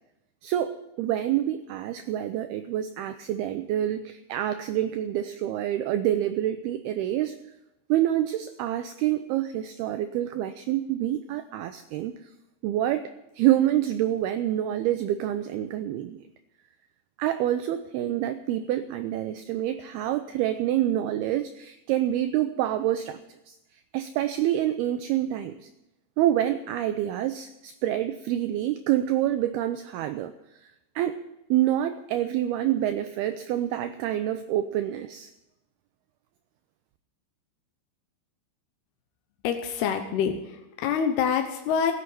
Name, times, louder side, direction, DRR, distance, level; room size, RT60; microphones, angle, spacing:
voice 1, 0.4-7.4 7.9-12.1 12.6-13.1 13.4-16.2 17.2-23.2 23.5-23.6 23.9-25.5 26.2-30.3 31.0-31.2 31.5-35.3, right 12 dB, 85° right, 9 dB, 2.2 m, -27 dB
voice 2, 39.4-41.9, left 7 dB, 70° left, 5 dB, 2.7 m, -26 dB
15.5 x 8.4 x 9.2 m, 0.91 s
omnidirectional pair, 5.3 m